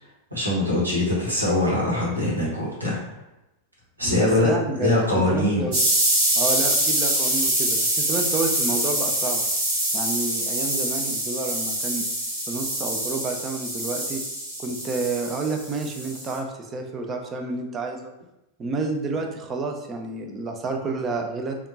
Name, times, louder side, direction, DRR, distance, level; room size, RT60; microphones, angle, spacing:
voice 1, 0.3-3.0 4.0-4.5 4.8-5.7, left 2 dB, 80° right, -6 dB, 1.1 m, -22 dB
voice 2, 4.0-5.8 6.4-9.4 9.9-12.0 12.5-14.2 14.6-18.1 18.6-21.6, right 3 dB, 25° right, 3 dB, 0.4 m, -29 dB
sound 1, 5.7-16.3, right 1 dB, 50° right, 1.4 m, -25 dB
3.4 x 2.3 x 2.7 m, 0.92 s
figure-of-eight pair, 90°, 0 cm